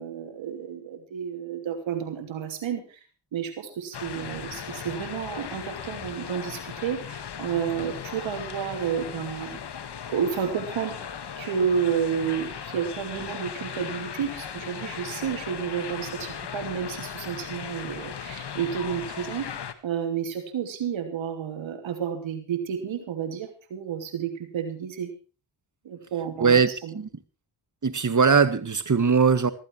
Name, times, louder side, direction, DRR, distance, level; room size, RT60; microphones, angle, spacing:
voice 1, 0.0-3.0 3.3-9.6 10.1-11.0 11.4-19.5 19.8-25.1 25.8-27.0, right 8 dB, 90° right, 7 dB, 2.9 m, -31 dB
sound 1, 3.9-19.7, left 7 dB, 60° left, 1.8 m, -37 dB
voice 2, 26.4-27.1 27.8-29.5, right 5 dB, 40° right, 14 dB, 1.9 m, -20 dB
15.0 x 14.5 x 4.6 m, 0.35 s
cardioid pair, 45°, 45 cm